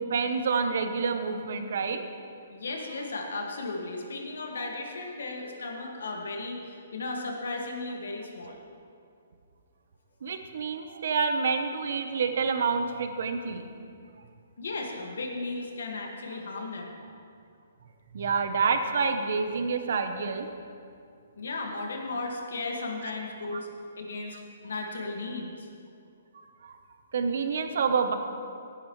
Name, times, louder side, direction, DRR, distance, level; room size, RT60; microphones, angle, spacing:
voice 1, 0.0-2.0 10.2-13.7 18.1-20.5 26.6-26.8 27.1-28.1, right 5 dB, 60° right, 7 dB, 1.0 m, -28 dB
voice 2, 2.5-8.6 14.6-17.0 21.3-23.7 24.0-25.7, left 3 dB, 85° left, 1 dB, 2.0 m, -35 dB
16.5 x 10.0 x 3.2 m, 2.4 s
hypercardioid pair, 165°, 0 cm